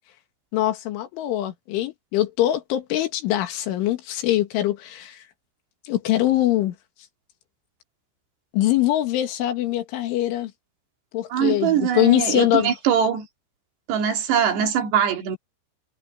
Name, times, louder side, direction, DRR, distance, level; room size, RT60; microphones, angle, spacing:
voice 1, 0.5-5.2 5.9-6.7 8.5-10.5 11.1-12.7, left 14 dB, 80° left, 4.4 m, -23 dB
voice 2, 11.3-13.3 13.9-15.4, right 8 dB, 65° right, 4.4 m, -22 dB
omnidirectional pair, 5.5 m